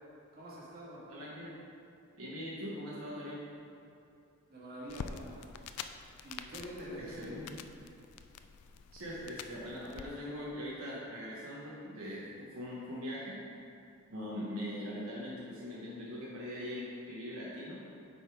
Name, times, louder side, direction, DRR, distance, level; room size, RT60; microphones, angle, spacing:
voice 1, 0.3-1.0 4.5-5.4 6.2-7.4, right 1 dB, 45° right, -6 dB, 1.7 m, -45 dB
voice 2, 1.1-1.6 2.2-3.4 7.0-7.6 8.9-13.4 14.1-17.8, equal, 70° right, -7 dB, 1.2 m, -41 dB
sound 1, 4.9-10.0, left 6 dB, 90° left, 0.4 m, -47 dB
8.0 x 4.1 x 4.7 m, 2.7 s
head